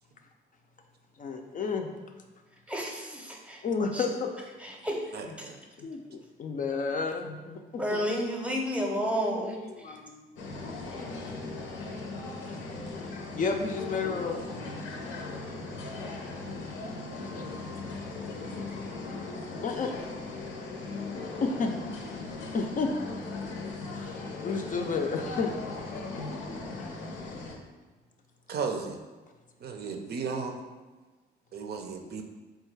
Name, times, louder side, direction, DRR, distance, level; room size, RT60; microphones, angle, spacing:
voice 1, 1.2-1.9 3.6-4.3 5.8-8.0 9.2-9.3 9.8-10.2 13.4-14.4 14.9-15.1 15.9-16.1 16.6-16.9 17.2-17.4 18.0-18.4 18.7-18.8 19.1-19.2 19.6-19.9 21.4-21.7 22.5-22.9 23.4-24.2 24.4-25.5 25.9-26.8, left 4 dB, 40° left, 4 dB, 0.4 m, -32 dB
voice 2, 2.7-3.6 3.9-4.0 4.6-5.0 5.4-5.5 7.8-9.6 9.9-10.0 16.2-16.4, equal, 5° right, 0 dB, 0.7 m, -31 dB
voice 3, 5.1-5.6 28.5-29.0 29.6-30.6 31.5-32.2, right 5 dB, 55° right, 4 dB, 0.5 m, -34 dB
sound 1, 10.4-27.6, left 3 dB, 85° left, 0.7 m, -38 dB
3.9 x 2.3 x 4.6 m, 1.3 s
cardioid pair, 90°, 20 cm